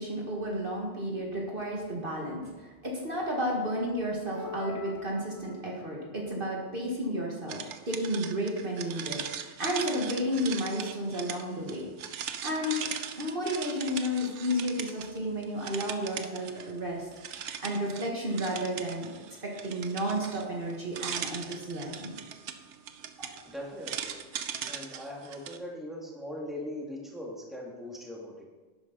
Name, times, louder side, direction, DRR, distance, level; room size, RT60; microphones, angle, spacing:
voice 1, 0.0-9.2 9.6-11.9 12.4-12.9 13.2-17.1 17.6-19.1 19.4-22.1, equal, 45° right, -2 dB, 1.8 m, -32 dB
sound 1, 4.3-6.0, left 8 dB, 70° left, 0.9 m, -44 dB
sound 2, 7.5-15.2 15.4-16.8 17.1-25.6, right 8 dB, 80° right, 1.0 m, -39 dB
voice 2, 23.4-24.2 24.7-28.4, left 1 dB, ahead, -3 dB, 2.2 m, -40 dB
11.5 x 9.5 x 4.0 m, 1.3 s
omnidirectional pair, 1.2 m